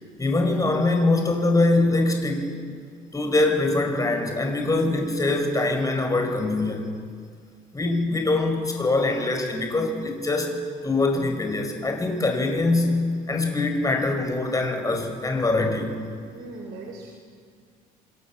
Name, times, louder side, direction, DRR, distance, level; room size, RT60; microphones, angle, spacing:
voice 1, 0.2-2.5 3.1-6.9 7.7-10.5 10.8-15.9, left 2 dB, 20° left, 4 dB, 5.4 m, -23 dB
voice 2, 16.3-17.1, right 3 dB, 75° right, 2 dB, 4.3 m, -39 dB
28.0 x 25.0 x 7.4 m, 2.1 s
cardioid pair, 110°, 17 cm